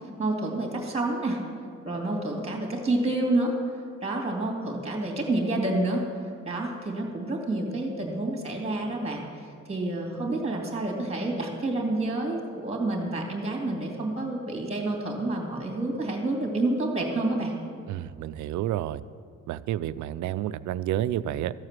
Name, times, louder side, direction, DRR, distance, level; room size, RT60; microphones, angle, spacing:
voice 1, 0.2-1.4 1.8-3.5 4.0-6.1 6.4-9.2 9.7-17.5, right 2 dB, 20° right, 1 dB, 2.5 m, -28 dB
voice 2, 17.9-19.0 19.5-21.5, right 12 dB, 75° right, 16 dB, 0.4 m, -30 dB
14.0 x 4.8 x 7.4 m, 2.2 s
cardioid pair, 90°, 30 cm